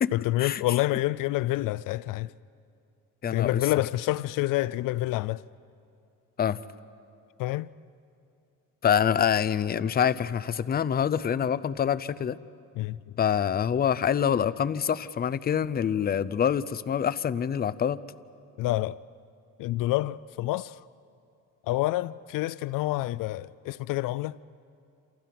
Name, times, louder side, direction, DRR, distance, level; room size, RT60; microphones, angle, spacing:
voice 1, 0.1-2.3 3.3-5.4 7.4-7.7 12.8-13.0 18.6-19.0 19.6-20.8 21.7-24.4, left 17 dB, 75° left, 0.5 m, -28 dB
voice 2, 3.2-3.6 6.4-6.6 8.8-12.4 13.2-18.0, left 8 dB, 30° left, 0.6 m, -26 dB
28.5 x 28.0 x 5.9 m
cardioid pair, 115°, 33 cm